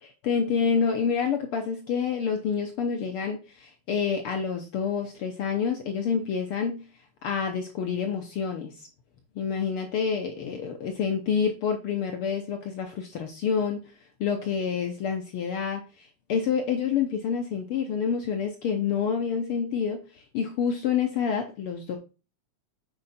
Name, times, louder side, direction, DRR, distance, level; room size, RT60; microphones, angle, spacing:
voice 1, 0.0-6.8 7.2-8.7 9.4-13.8 14.2-22.0, left 6 dB, 65° left, 4 dB, 1.4 m, -28 dB
8.0 x 4.8 x 4.2 m, 0.32 s
omnidirectional pair, 3.3 m